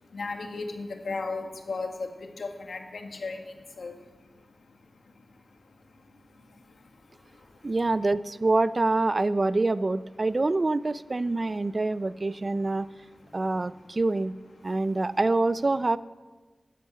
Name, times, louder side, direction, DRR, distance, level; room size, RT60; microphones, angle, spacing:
voice 1, 0.1-4.8 5.0-6.1 6.3-7.8 13.1-13.4 14.7-14.8, left 3 dB, 80° left, 5 dB, 1.7 m, -38 dB
voice 2, 7.6-12.9 13.3-14.3 14.6-16.0, right 2 dB, 40° right, 16 dB, 0.4 m, -26 dB
12.5 x 11.0 x 8.0 m, 1.3 s
wide cardioid pair, 105°, 0 cm